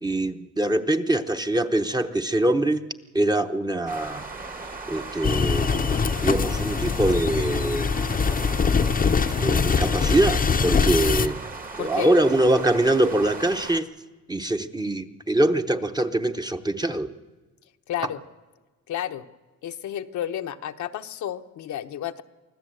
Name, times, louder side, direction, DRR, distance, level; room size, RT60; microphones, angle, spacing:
voice 1, 0.0-2.8 3.1-4.2 4.9-5.9 6.2-7.9 9.4-11.4 11.8-13.9 14.3-17.1, right 1 dB, 15° right, 7 dB, 0.9 m, -23 dB
sound 1, 3.9-13.8, right 3 dB, 30° right, 1.4 m, -37 dB
sound 2, 5.2-11.3, left 5 dB, 30° left, 0.7 m, -23 dB
voice 2, 11.8-12.1 17.9-18.2 18.9-19.3 19.6-22.2, left 11 dB, 70° left, 7 dB, 0.9 m, -31 dB
24.0 x 15.0 x 7.8 m, 1.3 s
cardioid pair, 90°, 30 cm